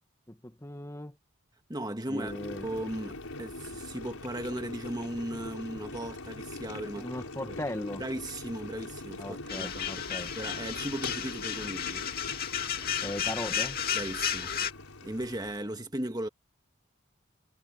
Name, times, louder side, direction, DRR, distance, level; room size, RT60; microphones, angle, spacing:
voice 1, 0.3-1.2 2.1-2.6 7.0-8.0 9.2-10.3 13.0-13.8, left 1 dB, 15° left, 1.2 m, -38 dB
voice 2, 1.7-2.3 2.6-7.1 7.5-7.6 8.0-10.0 10.3-12.1 13.9-14.6 15.0-16.3, right 1 dB, 20° right, 1.5 m, -37 dB
Boiling, 2.2-15.7, left 2 dB, 85° left, 5.5 m, -43 dB
sound 1, 9.5-14.7, left 8 dB, 45° left, 2.6 m, -33 dB
head